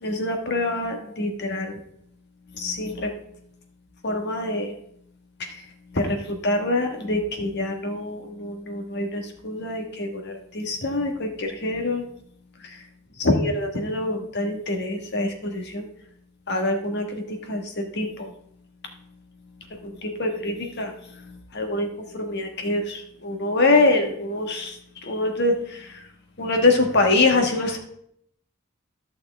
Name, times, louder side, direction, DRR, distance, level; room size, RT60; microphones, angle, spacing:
voice 1, 0.0-1.8 2.5-3.1 4.0-4.7 5.4-5.5 5.9-12.1 13.2-15.8 16.5-17.2 17.5-18.3 19.8-26.0 26.4-27.8, left 2 dB, 55° left, 4 dB, 1.5 m, -25 dB
13.5 x 6.5 x 3.4 m, 0.72 s
head